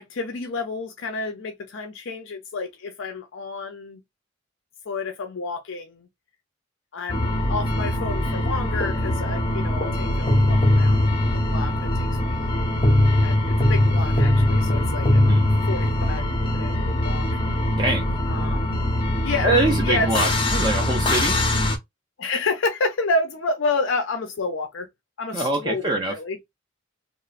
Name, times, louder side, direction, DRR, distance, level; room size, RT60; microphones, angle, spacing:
voice 1, 0.0-4.0 4.9-6.1 6.9-11.1 11.4-11.7 12.2-12.4 13.2-15.2 15.7-16.2 16.5-17.3 18.3-18.9 19.2-20.1 22.2-24.9 25.2-26.4, left 3 dB, 75° left, 0.5 m, -29 dB
sound 1, 7.1-21.8, left 1 dB, 25° left, 0.5 m, -21 dB
voice 2, 19.4-21.4 25.3-26.2, right 2 dB, 20° right, 0.4 m, -24 dB
3.0 x 2.1 x 2.4 m
head